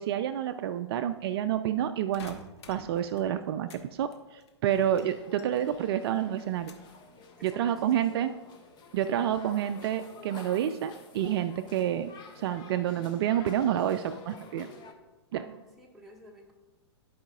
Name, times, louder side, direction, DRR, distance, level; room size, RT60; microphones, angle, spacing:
voice 1, 0.0-2.3 2.7-6.7 7.4-8.3 8.9-12.1 12.4-14.7 15.3-15.4, right 10 dB, 60° right, 9 dB, 0.4 m, -29 dB
sound 1, 2.1-3.9 4.1-5.9 6.2-7.0 7.4-7.9, left 4 dB, 70° left, 1.1 m, -50 dB
sound 2, 4.7-14.9, left 4 dB, 30° left, 0.9 m, -50 dB
voice 2, 7.4-8.3 9.0-9.4 15.3-16.5, equal, ahead, -4 dB, 1.6 m, -50 dB
15.0 x 5.0 x 2.4 m, 1.1 s
hypercardioid pair, 115°, 15 cm